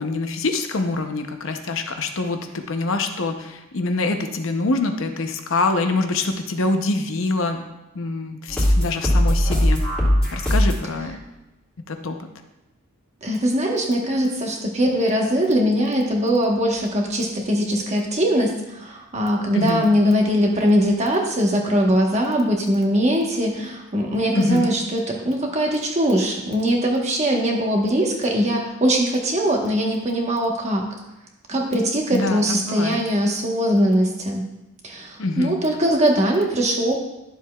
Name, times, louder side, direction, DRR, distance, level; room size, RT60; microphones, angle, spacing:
voice 1, 0.0-7.6 7.9-9.8 10.3-11.2 11.9-12.2 19.5-19.9 24.3-24.7 32.1-33.0 35.2-35.6, left 2 dB, 65° left, 6 dB, 0.7 m, -25 dB
sound 1, 8.5-10.9, equal, 5° left, 2.4 m, -19 dB
voice 2, 13.2-30.9 31.5-34.4 34.8-37.0, equal, 30° right, 1 dB, 1.1 m, -21 dB
11.5 x 7.3 x 2.3 m, 0.92 s
head